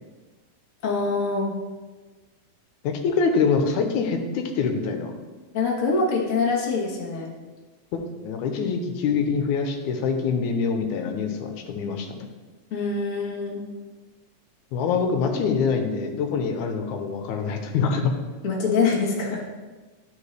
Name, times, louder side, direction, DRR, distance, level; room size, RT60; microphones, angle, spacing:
voice 1, 0.8-1.5 5.5-7.3 12.7-13.6 18.4-19.4, left 4 dB, 65° left, -3 dB, 0.7 m, -24 dB
voice 2, 2.8-5.1 8.2-12.3 14.7-18.1, left 5 dB, 85° left, 5 dB, 2.2 m, -25 dB
11.0 x 4.6 x 3.2 m, 1.3 s
omnidirectional pair, 3.5 m